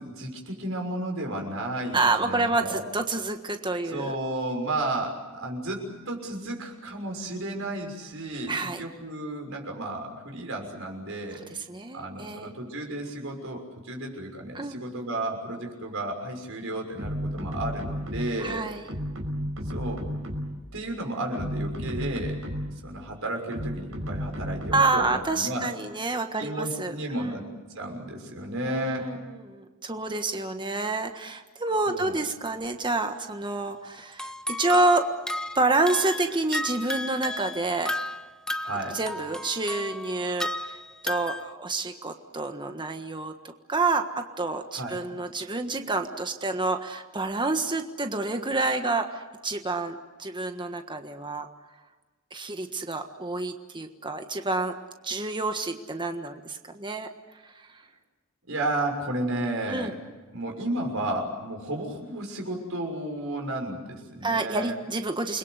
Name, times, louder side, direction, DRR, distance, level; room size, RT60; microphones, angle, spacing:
voice 1, 0.0-2.8 3.8-11.4 11.9-18.7 19.7-20.0 20.7-22.4 22.8-25.7 26.4-27.4 27.7-29.1 31.9-32.1 38.6-39.0 44.7-45.0 58.4-60.0 60.3-64.8, right 1 dB, 65° right, 2 dB, 6.5 m, -33 dB
voice 2, 1.9-4.2 8.5-8.8 11.7-12.5 14.5-14.8 18.4-18.9 24.7-27.4 28.6-35.1 35.5-37.9 38.9-40.8 41.0-51.5 52.3-54.7 55.0-57.1 59.7-59.9 64.2-65.4, right 3 dB, 20° right, 6 dB, 1.5 m, -28 dB
sound 1, 17.0-18.5 18.9-20.7 21.2-22.9 23.5-25.0, equal, 85° right, 5.2 m, -33 dB
sound 2, 33.1-33.3 34.1-41.5, left 1 dB, 5° left, 0.8 m, -34 dB
29.0 x 21.5 x 8.2 m, 1.2 s
head